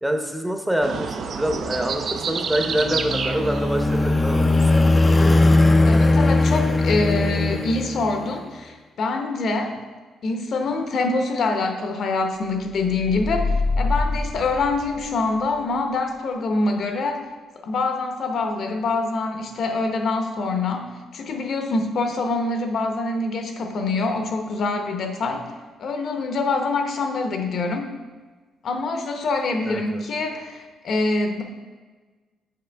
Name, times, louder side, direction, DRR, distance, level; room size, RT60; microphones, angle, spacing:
voice 1, 0.0-4.6 29.6-30.0, right 1 dB, 10° right, 4 dB, 0.7 m, -25 dB
sound 1, 0.8-6.0, right 5 dB, 55° right, 0.4 m, -31 dB
sound 2, 2.7-8.4, left 2 dB, 25° left, 0.4 m, -19 dB
voice 2, 5.9-9.8 10.2-17.2 17.6-25.4 25.8-27.9 28.6-31.4, left 3 dB, 60° left, 5 dB, 0.8 m, -25 dB
sound 3, 12.8-15.4, left 3 dB, 85° left, 1.6 m, -25 dB
6.6 x 4.8 x 3.4 m, 1.4 s
cardioid pair, 90°, 0 cm